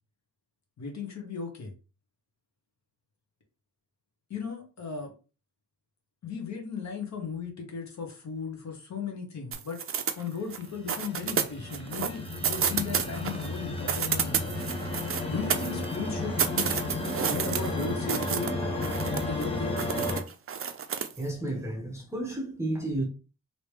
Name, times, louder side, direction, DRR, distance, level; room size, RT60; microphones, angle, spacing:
voice 1, 0.8-1.7 4.3-5.1 6.2-9.8 10.2-14.6 15.3-16.8 17.3-18.5 19.1-19.9, left 5 dB, 50° left, 1.1 m, -36 dB
sound 1, 9.5-10.6 10.9-13.5 13.8-16.0 16.4-18.5 18.8-19.4 19.8-21.2, right 7 dB, 40° right, 0.4 m, -30 dB
sound 2, 10.5-20.2, left 2 dB, 15° left, 0.7 m, -33 dB
voice 2, 21.2-23.0, right 1 dB, 10° right, 1.0 m, -32 dB
3.1 x 2.9 x 3.2 m
wide cardioid pair, 140°, 34 cm